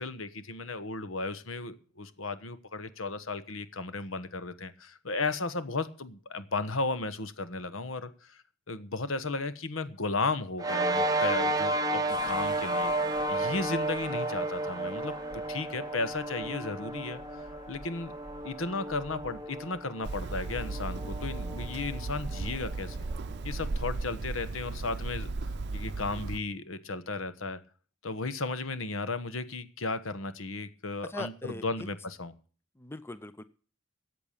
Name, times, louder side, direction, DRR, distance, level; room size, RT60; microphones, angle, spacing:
voice 1, 0.0-12.9 13.3-15.1 15.5-17.2 17.7-18.1 18.4-23.0 23.4-25.3 25.7-27.6 28.0-32.3, left 3 dB, 80° left, 12 dB, 1.3 m, -35 dB
sound 1, 10.6-23.3, right 1 dB, 20° right, 0.8 m, -33 dB
sound 2, 12.1-20.3, left 2 dB, 40° left, 3.4 m, -48 dB
Hammer, 20.0-26.4, right 3 dB, 55° right, 0.6 m, -36 dB
voice 2, 31.0-31.9 32.8-33.4, left 1 dB, 10° left, 13 dB, 0.6 m, -41 dB
13.5 x 8.3 x 7.3 m, 0.40 s
head